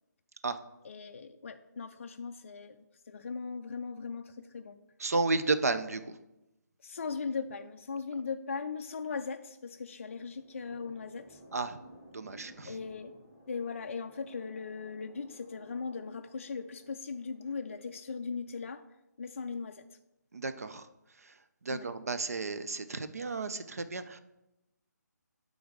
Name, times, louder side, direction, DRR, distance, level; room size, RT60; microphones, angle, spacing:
voice 1, 0.8-4.8 6.8-11.4 12.7-13.1 13.5-18.8 19.2-19.8 21.7-21.9, left 5 dB, 45° left, 7 dB, 0.3 m, -39 dB
voice 2, 5.0-6.2 11.5-11.8 12.1-12.8 20.3-20.9 21.2-21.4 21.6-24.2, right 3 dB, 55° right, 11 dB, 0.5 m, -33 dB
sound 1, 9.7-18.1, equal, 10° right, 1.5 m, -57 dB
7.8 x 4.0 x 4.8 m, 0.92 s
figure-of-eight pair, 145°, 10 cm